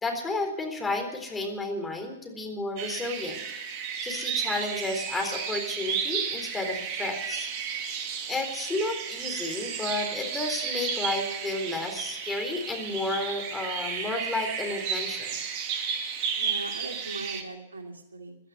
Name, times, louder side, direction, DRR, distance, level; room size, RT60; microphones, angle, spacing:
voice 1, 0.0-3.4 4.0-7.5 8.3-15.4, left 2 dB, 10° left, 3 dB, 3.9 m, -32 dB
sound 1, 2.8-17.4, right 7 dB, 40° right, 2.2 m, -33 dB
voice 2, 16.4-18.4, right 2 dB, 80° right, 3 dB, 2.7 m, -40 dB
16.5 x 12.0 x 6.8 m, 0.90 s
figure-of-eight pair, 110°, 0 cm